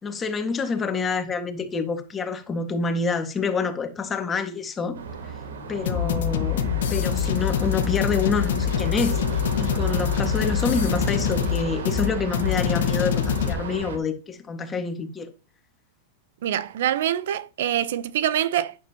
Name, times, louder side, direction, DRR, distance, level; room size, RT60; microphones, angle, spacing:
voice 1, 0.0-5.0 5.7-6.6 6.9-15.3, left 4 dB, 15° left, 1.8 m, -27 dB
sound 1, 4.9-14.0, right 4 dB, 85° right, 3.0 m, -33 dB
sound 2, 5.9-13.5, left 9 dB, 75° left, 1.5 m, -25 dB
voice 2, 16.4-18.8, right 11 dB, 70° right, 0.8 m, -25 dB
11.0 x 9.8 x 3.0 m
supercardioid pair, 145°, 0 cm